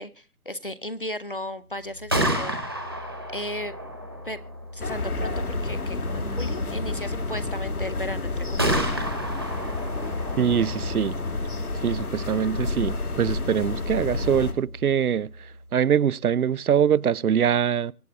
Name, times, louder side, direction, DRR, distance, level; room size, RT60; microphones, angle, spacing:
voice 1, 0.0-2.6 3.3-3.7 4.2-4.4 4.7-8.8, left 1 dB, 40° left, 0.7 m, -35 dB
Gunshot gunfire, 1.9-15.7, equal, 15° right, 1.2 m, -33 dB
sound 1, 4.8-14.5, left 3 dB, 80° left, 2.5 m, -30 dB
voice 2, 10.4-11.2 11.8-17.9, right 8 dB, 80° right, 0.6 m, -23 dB
24.0 x 8.2 x 3.5 m
figure-of-eight pair, 180°, 44 cm